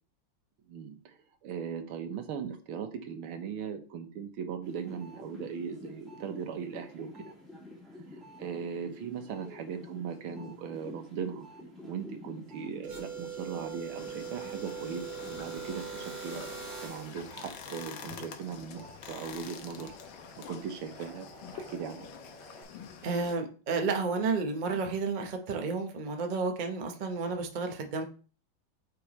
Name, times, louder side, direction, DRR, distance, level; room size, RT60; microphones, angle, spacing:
voice 1, 0.7-1.2 1.4-7.3 8.1-11.5 11.9-16.6 16.8-19.9 20.4-22.1, right 7 dB, 90° right, 7 dB, 1.9 m, -39 dB
sound 1, 4.6-15.9 16.3-22.6, left 1 dB, ahead, 2.4 m, -50 dB
sound 2, 12.8-17.2, right 6 dB, 60° right, 3.2 m, -41 dB
sound 3, 14.0-23.4, left 7 dB, 70° left, 1.5 m, -47 dB
voice 2, 23.0-28.0, right 4 dB, 40° right, 4 dB, 0.6 m, -31 dB
8.6 x 4.6 x 3.0 m, 0.38 s
omnidirectional pair, 2.3 m